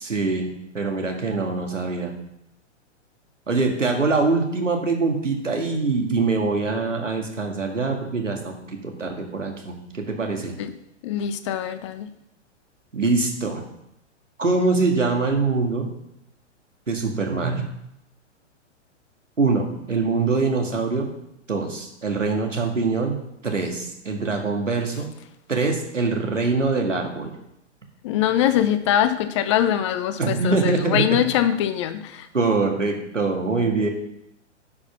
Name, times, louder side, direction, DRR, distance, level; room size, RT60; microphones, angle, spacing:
voice 1, 0.0-2.1 3.5-8.5 8.8-10.6 12.9-13.6 14.4-15.9 16.9-17.7 19.4-21.1 21.5-25.1 25.5-27.3 30.2-31.2 32.3-33.9, right 3 dB, 85° right, 2 dB, 2.0 m, -24 dB
voice 2, 11.0-12.1 28.0-32.3, left 10 dB, 25° left, 12 dB, 0.4 m, -23 dB
10.5 x 6.1 x 5.7 m, 0.81 s
figure-of-eight pair, 110°, 36 cm